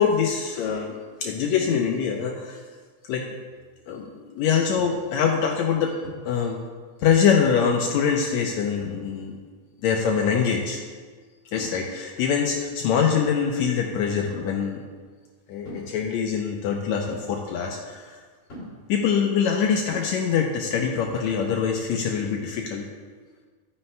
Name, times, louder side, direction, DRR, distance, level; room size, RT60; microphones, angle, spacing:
voice 1, 0.0-2.6 3.1-3.3 3.9-6.0 6.2-6.6 7.0-9.4 9.8-10.8 11.5-14.8 15.5-18.1 18.9-22.9, left 7 dB, 90° left, 1 dB, 1.6 m, -24 dB
sound 1, 3.5-3.7 4.8-5.0 6.0-6.4 7.4-7.8 8.8-9.1 10.3-10.6 11.6-11.9 12.9-13.3 14.3-14.6 15.6-15.9 17.1-17.3 18.5-18.8 19.9-20.0, equal, 35° left, 3.0 m, -41 dB
12.5 x 9.7 x 2.2 m, 1.5 s
omnidirectional pair, 3.9 m